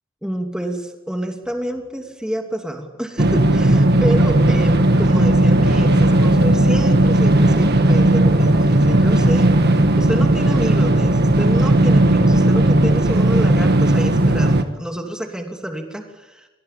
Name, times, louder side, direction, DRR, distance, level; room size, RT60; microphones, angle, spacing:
voice 1, 0.2-9.5 10.0-16.5, right 1 dB, 5° right, 4 dB, 2.9 m, -28 dB
sound 1, 1.4-2.0 4.1-6.8, equal, 25° right, 4.6 m, -37 dB
sound 2, 3.2-14.6, right 1 dB, 55° right, 1.6 m, -15 dB
26.0 x 18.5 x 8.7 m, 1.1 s
head